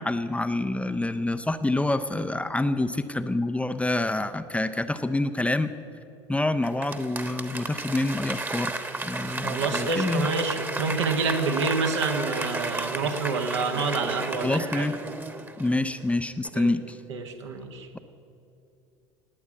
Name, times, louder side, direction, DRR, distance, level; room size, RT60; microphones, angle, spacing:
voice 1, 0.0-5.7 6.3-8.7 9.0-10.3 14.4-15.0 15.6-17.0, left 2 dB, 10° left, 10 dB, 0.6 m, -27 dB
Applause / Crowd, 6.6-16.1 16.4-16.5, right 2 dB, 15° right, 1.3 m, -33 dB
voice 2, 9.3-14.8 16.5-16.7 17.1-17.9, right 4 dB, 75° right, 3 dB, 1.6 m, -28 dB
19.0 x 8.4 x 8.2 m, 2.6 s
figure-of-eight pair, 70°, 15 cm